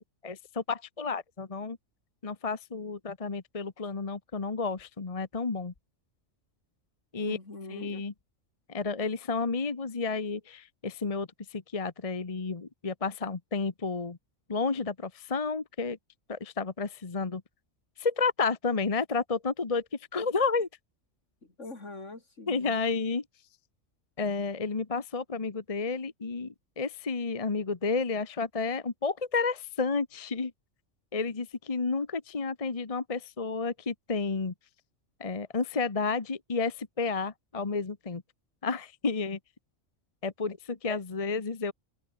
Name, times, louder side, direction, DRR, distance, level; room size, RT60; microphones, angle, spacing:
voice 1, 0.2-1.8 2.2-5.7 7.1-7.4 7.7-8.1 8.7-14.2 14.5-16.0 16.3-17.4 18.0-19.8 20.1-20.7 22.5-23.2 24.2-30.5 31.1-34.5 35.2-38.2 38.6-39.4 40.2-41.7, left 4 dB, 30° left, 1.1 m, -31 dB
voice 2, 7.2-8.1 21.4-22.8 40.9-41.0, left 2 dB, 65° left, 4.2 m, -43 dB
open air
omnidirectional pair, 1.3 m